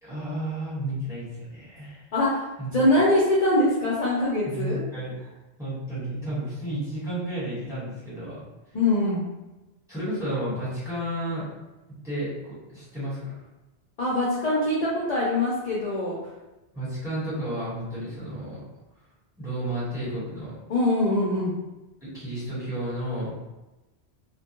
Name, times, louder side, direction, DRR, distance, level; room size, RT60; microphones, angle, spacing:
voice 1, 0.0-2.0 2.6-2.7 4.4-5.2 5.6-8.4 9.9-11.5 12.0-13.3 16.7-18.6 19.4-20.5 22.0-23.3, right 1 dB, 5° right, -10 dB, 1.1 m, -32 dB
voice 2, 2.1-2.4 2.7-4.8 8.7-9.2 14.0-16.2 20.7-21.5, left 1 dB, 50° left, -6 dB, 0.6 m, -23 dB
2.2 x 2.2 x 2.9 m, 1.0 s
omnidirectional pair, 1.1 m